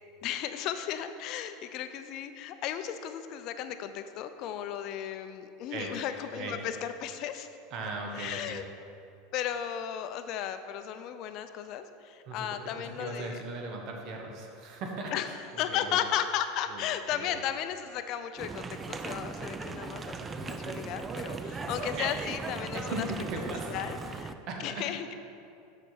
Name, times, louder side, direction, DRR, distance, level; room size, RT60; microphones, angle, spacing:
voice 1, 0.2-7.5 8.2-8.7 9.3-13.4 15.1-15.3 15.6-23.1 23.7-24.3 24.6-25.1, left 10 dB, 50° left, 10 dB, 0.5 m, -35 dB
voice 2, 5.7-6.6 7.7-8.6 12.3-16.0 16.7-16.8 17.1-17.3 21.9-22.1 22.7-24.1 24.5-24.9, right 2 dB, 50° right, 1 dB, 1.1 m, -38 dB
sound 1, 18.4-24.3, right 4 dB, 20° right, 0.4 m, -38 dB
6.6 x 4.5 x 6.3 m, 2.5 s
supercardioid pair, 120°, 0 cm